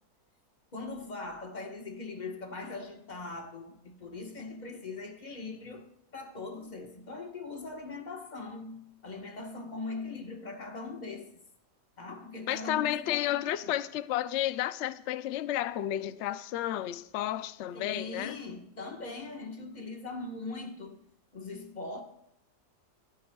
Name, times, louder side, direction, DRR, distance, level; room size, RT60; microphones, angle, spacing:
voice 1, 0.7-11.3 12.0-13.7 17.7-21.0 21.3-22.0, left 3 dB, 25° left, 1.4 m, -41 dB
voice 2, 12.5-18.4, left 12 dB, 75° left, 0.6 m, -32 dB
24.0 x 13.0 x 2.3 m
omnidirectional pair, 1.8 m